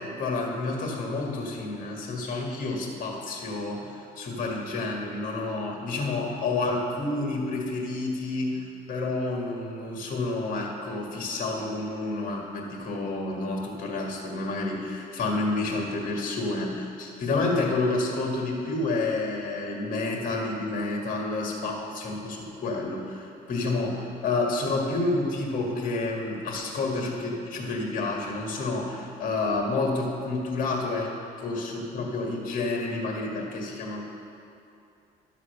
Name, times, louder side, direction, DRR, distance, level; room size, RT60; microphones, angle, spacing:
voice 1, 0.0-31.1 31.4-34.0, left 2 dB, 55° left, -1 dB, 1.9 m, -29 dB
12.0 x 4.1 x 6.6 m, 2.6 s
cardioid pair, 110°, 17 cm